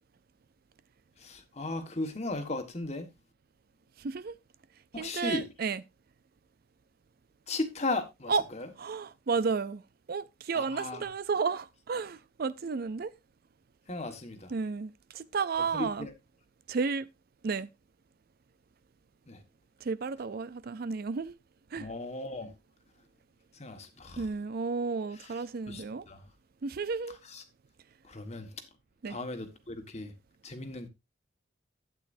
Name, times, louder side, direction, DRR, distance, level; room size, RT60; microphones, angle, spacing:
voice 1, 1.2-3.1 4.9-5.5 7.5-8.7 10.5-11.1 13.9-14.5 15.7-16.1 19.3-19.4 21.8-22.5 23.5-24.3 25.2-25.3 25.7-26.2 27.3-27.4 28.0-28.5 29.1-30.1 30.4-30.9, left 2 dB, 35° left, 1.5 m, -36 dB
voice 2, 4.0-4.4 5.0-5.8 8.3-8.4 8.8-9.8 10.1-13.1 14.5-16.1 16.7-17.1 17.4-17.7 19.8-21.3 21.7-21.9 24.2-26.1 26.6-27.2 29.0-29.2, right 5 dB, 50° right, 0.4 m, -32 dB
12.0 x 8.7 x 2.6 m
head